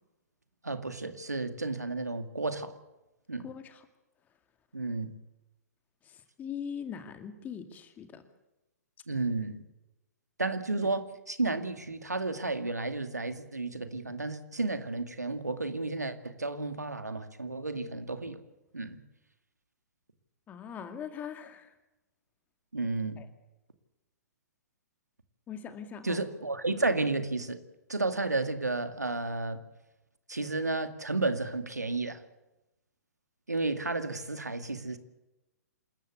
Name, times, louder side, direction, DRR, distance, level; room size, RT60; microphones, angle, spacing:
voice 1, 0.6-2.7 3.3-3.5 4.7-5.1 9.1-9.6 10.4-18.4 18.7-19.0 22.7-23.2 26.0-27.6 27.9-29.6 30.3-32.2 33.5-35.0, right 3 dB, 80° right, 9 dB, 2.2 m, -32 dB
voice 2, 3.4-3.9 6.1-8.2 10.8-10.9 20.5-21.7 23.2-23.3 25.5-26.2, left 7 dB, 20° left, 8 dB, 2.3 m, -41 dB
27.0 x 14.0 x 8.2 m, 0.98 s
figure-of-eight pair, 115°, 9 cm